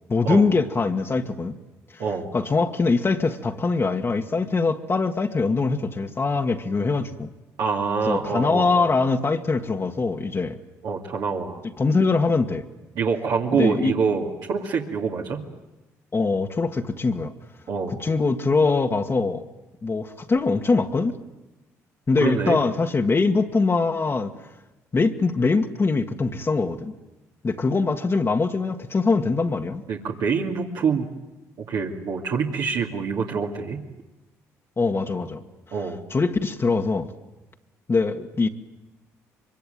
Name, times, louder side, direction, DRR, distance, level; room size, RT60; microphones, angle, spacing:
voice 1, 0.1-1.6 1.9-2.0 2.3-7.3 8.1-10.6 11.8-12.6 13.5-13.9 16.1-17.3 18.0-19.4 19.8-21.2 22.1-24.3 24.9-26.9 27.4-29.8 34.8-35.4 36.1-37.1 37.9-38.5, left 4 dB, 35° left, 4 dB, 1.8 m, -22 dB
voice 2, 7.6-8.9 10.8-11.6 12.9-15.4 17.7-18.0 22.2-22.6 29.9-31.1 31.6-33.8 35.7-36.0, right 5 dB, 65° right, -2 dB, 2.6 m, -25 dB
24.0 x 23.5 x 9.3 m, 1.0 s
hypercardioid pair, 55°, 7 cm